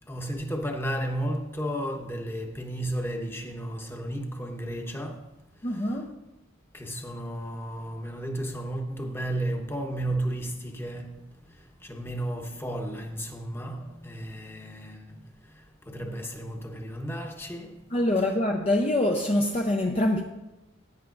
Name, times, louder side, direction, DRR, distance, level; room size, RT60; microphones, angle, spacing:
voice 1, 0.1-6.0 6.7-18.4, right 1 dB, 10° left, 1.0 m, -34 dB
voice 2, 5.6-6.2 17.9-20.2, left 1 dB, 30° left, 0.6 m, -25 dB
16.5 x 9.1 x 2.6 m
head